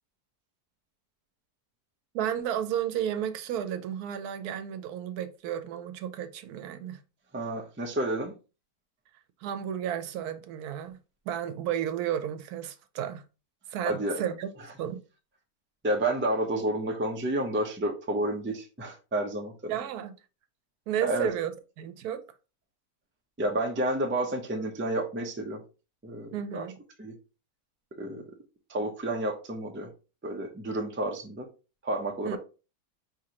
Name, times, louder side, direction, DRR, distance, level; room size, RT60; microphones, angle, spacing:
voice 1, 2.1-7.0 9.4-11.0 11.3-13.2 13.7-14.5 14.8-15.0 19.7-20.1 20.9-21.5 21.8-22.2 26.3-26.8 32.2-32.4, right 10 dB, 80° right, 1.1 m, -32 dB
voice 2, 7.3-8.3 13.8-14.3 15.8-19.7 21.0-21.3 23.4-25.6 26.0-26.7 27.0-27.1 28.0-28.2 28.7-29.9 30.2-31.5 31.8-32.4, right 1 dB, 20° right, 0.3 m, -30 dB
5.0 x 3.1 x 2.9 m
omnidirectional pair, 1.6 m